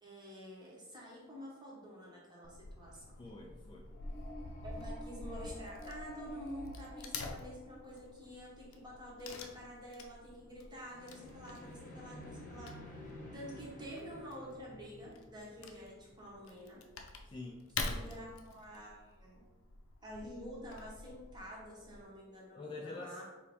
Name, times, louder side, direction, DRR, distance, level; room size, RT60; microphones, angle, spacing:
voice 1, 0.0-3.0 4.6-12.9 13.3-16.8 17.8-19.5 20.0-23.2, equal, 20° right, -4 dB, 0.9 m, -48 dB
Wood / Tearing, 2.4-22.1, left 3 dB, 85° left, 0.5 m, -47 dB
voice 2, 3.2-3.9 17.2-17.7 22.5-23.2, left 3 dB, 25° left, -1 dB, 0.3 m, -46 dB
sound 1, 3.8-8.2 10.8-15.8, left 1 dB, 40° left, 0.9 m, -51 dB
4.3 x 2.5 x 3.4 m, 1.1 s
head